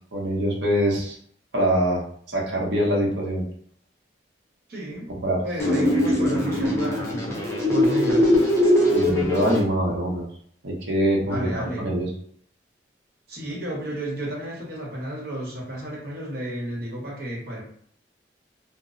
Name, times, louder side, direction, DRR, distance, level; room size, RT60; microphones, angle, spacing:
voice 1, 0.1-1.2 1.5-3.4 5.2-5.4 8.9-10.2 10.6-12.1, right 1 dB, 80° right, -3 dB, 0.8 m, -24 dB
voice 2, 4.7-5.1 5.4-7.4 7.7-8.3 11.2-11.9 13.3-17.6, right 1 dB, 60° right, -4 dB, 1.0 m, -32 dB
sound 1, 5.6-9.6, left 1 dB, 15° left, 0.6 m, -21 dB
2.1 x 2.0 x 3.6 m, 0.62 s
head